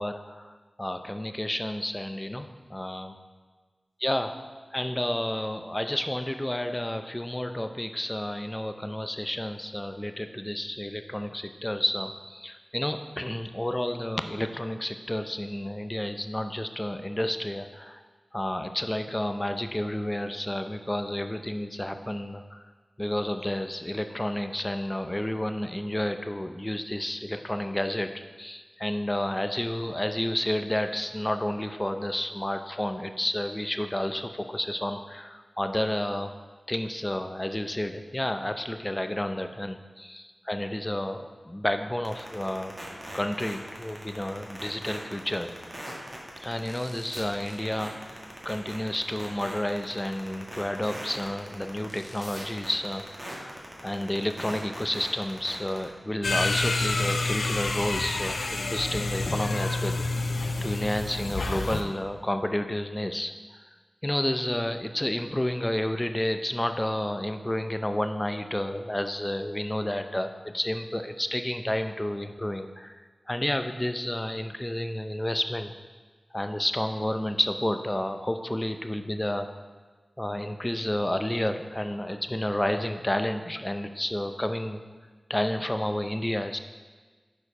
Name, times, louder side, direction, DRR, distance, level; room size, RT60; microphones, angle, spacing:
voice 1, 0.0-3.2 4.0-4.3 4.7-18.0 18.3-22.6 23.0-36.3 36.7-42.8 43.1-45.5 46.4-48.2 48.4-60.0 60.6-63.3 64.0-75.7 76.3-79.5 80.2-84.8 85.3-86.6, left 1 dB, 20° left, 8 dB, 0.5 m, -30 dB
sound 1, 42.0-55.8, right 1 dB, 25° right, 1.7 m, -40 dB
sound 2, 56.2-61.8, left 2 dB, 85° left, 0.5 m, -28 dB
6.6 x 4.5 x 5.3 m, 1.4 s
cardioid pair, 45°, 0 cm